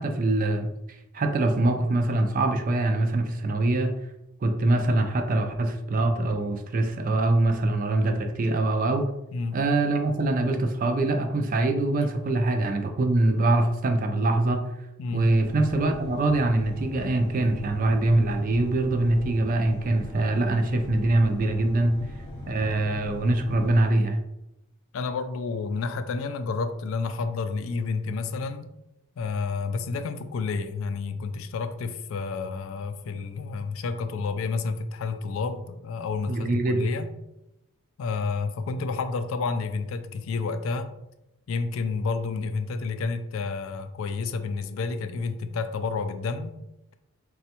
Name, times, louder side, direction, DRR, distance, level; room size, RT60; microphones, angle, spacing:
voice 1, 0.0-3.9 4.4-9.1 9.5-14.6 15.1-22.0 22.5-24.2 36.3-36.9, right 2 dB, 40° right, 6 dB, 0.4 m, -24 dB
sound 1, 15.2-23.9, equal, 35° left, 0.9 m, -40 dB
voice 2, 24.9-28.7 29.2-37.1 38.0-40.9 41.5-46.6, left 4 dB, 65° left, 9 dB, 0.3 m, -30 dB
4.0 x 2.3 x 2.8 m, 0.90 s
head